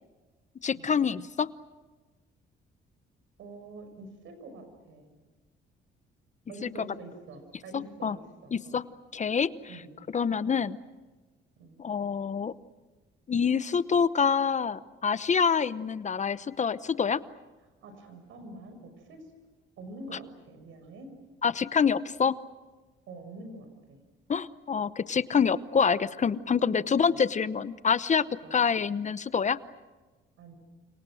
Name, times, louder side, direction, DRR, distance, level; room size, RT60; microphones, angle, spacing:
voice 1, 0.6-1.5 7.7-8.2 8.5-8.8 9.1-9.5 10.1-10.8 11.8-12.5 13.3-17.2 21.4-22.3 24.3-28.3 28.5-29.6, left 6 dB, 35° left, 15 dB, 0.8 m, -26 dB
voice 2, 3.4-5.1 6.5-8.8 9.6-9.9 10.6-10.7 11.6-11.8 17.8-19.3 19.8-21.1 23.1-24.0 25.7-25.9 26.6-27.2 28.4-28.6 30.4-30.6, right 2 dB, 80° right, 7 dB, 6.3 m, -46 dB
30.0 x 26.5 x 6.4 m, 1.2 s
cardioid pair, 90°, 20 cm